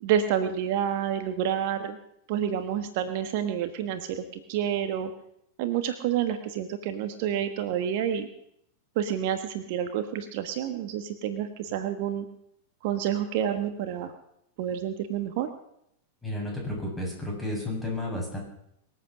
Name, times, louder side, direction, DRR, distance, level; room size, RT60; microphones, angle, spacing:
voice 1, 0.0-2.0 2.3-5.1 5.6-8.3 8.9-12.3 12.8-14.1 14.6-15.5, right 9 dB, 55° right, 9 dB, 1.3 m, -29 dB
voice 2, 16.2-18.4, left 1 dB, 5° left, -2 dB, 7.3 m, -32 dB
24.0 x 8.3 x 6.2 m, 0.75 s
figure-of-eight pair, 95°, 0 cm